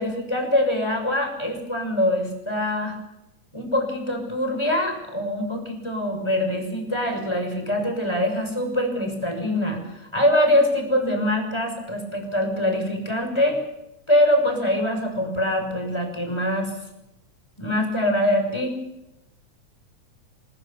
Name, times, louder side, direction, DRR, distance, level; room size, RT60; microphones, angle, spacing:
voice 1, 0.0-3.0 3.5-13.6 14.1-16.7 17.6-18.7, left 1 dB, 10° left, 4 dB, 6.3 m, -23 dB
24.0 x 22.0 x 7.2 m, 0.89 s
omnidirectional pair, 3.5 m